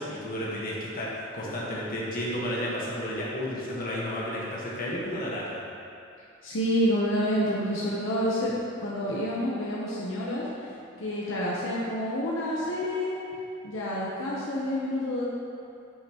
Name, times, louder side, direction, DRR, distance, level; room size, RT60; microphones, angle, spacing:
voice 1, 0.0-5.6, equal, 45° left, -6 dB, 1.4 m, -32 dB
voice 2, 6.4-10.7 11.0-13.2 13.6-15.2, equal, 70° left, -6 dB, 0.9 m, -28 dB
8.8 x 5.6 x 3.0 m, 2.6 s
head